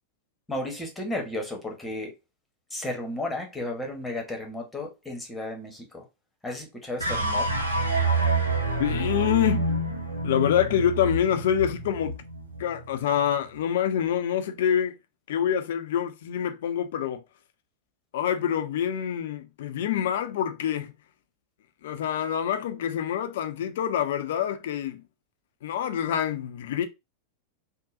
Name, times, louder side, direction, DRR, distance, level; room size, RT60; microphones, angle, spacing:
voice 1, 0.5-2.1 2.7-6.0 6.4-7.5, left 1 dB, 10° left, 1.0 m, -33 dB
sound 1, 7.0-13.4, right 2 dB, 85° right, 0.6 m, -28 dB
voice 2, 8.8-9.7 10.2-12.1 12.6-15.0 15.3-17.2 18.1-20.9 21.8-25.0 25.6-26.9, left 9 dB, 55° left, 0.5 m, -26 dB
3.7 x 2.1 x 2.6 m
figure-of-eight pair, 90°, 0 cm